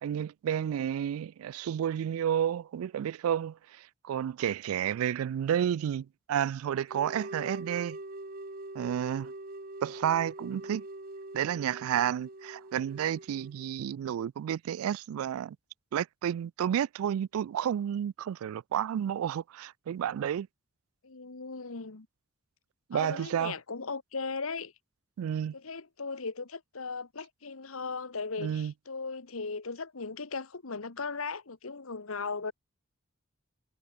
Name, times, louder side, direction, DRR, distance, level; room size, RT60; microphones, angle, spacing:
voice 1, 0.0-8.0 8.7-9.3 9.8-10.8 11.3-15.6 15.9-20.5 22.9-23.5 25.2-25.5 28.4-28.7, right 9 dB, 85° right, 0.3 m, -31 dB
sound 1, 6.9-13.6, right 2 dB, 45° right, 2.0 m, -43 dB
voice 2, 21.0-22.1 22.9-24.7 25.5-32.5, left 4 dB, 75° left, 1.3 m, -37 dB
head